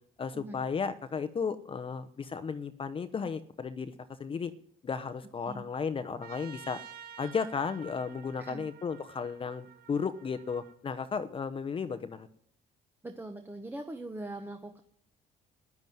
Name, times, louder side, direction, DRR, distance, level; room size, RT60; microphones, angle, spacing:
voice 1, 0.2-4.5 4.8-6.8 7.2-12.3, left 5 dB, 30° left, 11 dB, 0.9 m, -34 dB
Trumpet, 6.2-10.8, right 8 dB, 65° right, 1.4 m, -51 dB
voice 2, 13.0-14.8, right 2 dB, 10° right, 6 dB, 1.2 m, -41 dB
13.0 x 11.0 x 9.5 m, 0.64 s
cardioid pair, 110°, 17 cm